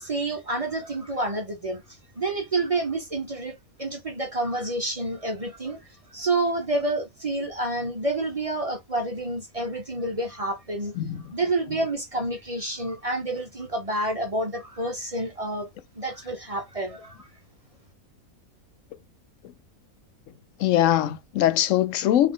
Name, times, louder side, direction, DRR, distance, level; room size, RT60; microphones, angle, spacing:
voice 1, 0.0-10.9 11.3-15.7 15.9-17.3, right 2 dB, 35° right, 0.6 m, -29 dB
voice 2, 20.6-22.3, left 12 dB, 70° left, 0.9 m, -22 dB
4.0 x 2.8 x 3.7 m
omnidirectional pair, 1.5 m